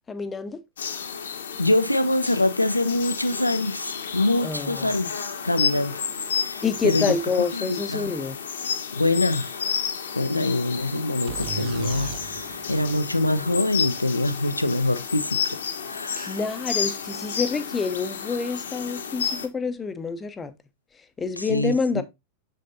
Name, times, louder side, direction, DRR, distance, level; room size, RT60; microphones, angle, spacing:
voice 1, 0.1-0.6 4.4-4.9 6.6-8.4 16.2-20.5 21.2-22.0, left 5 dB, 15° left, 0.8 m, -27 dB
sound 1, 0.8-19.5, left 7 dB, 65° left, 1.2 m, -31 dB
voice 2, 1.6-6.1 6.4-7.1 7.5-8.1 8.9-9.7 10.1-15.6 15.9-16.4 21.4-22.0, left 2 dB, 85° left, 0.8 m, -25 dB
sound 2, 11.3-15.0, right 15 dB, 45° right, 0.4 m, -38 dB
7.5 x 6.7 x 2.7 m
figure-of-eight pair, 90°, 0 cm